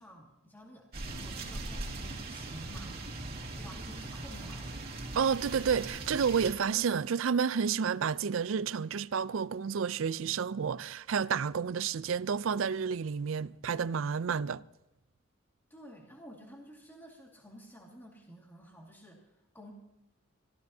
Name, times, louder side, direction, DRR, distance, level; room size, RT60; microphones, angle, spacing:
voice 1, 0.0-3.2 3.5-4.8 15.7-19.7, equal, 10° left, 2.0 m, -51 dB
sound 1, 0.9-6.5, right 2 dB, 50° right, 2.4 m, -40 dB
voice 2, 5.1-14.6, right 6 dB, 70° right, 0.4 m, -30 dB
23.5 x 15.0 x 2.8 m
head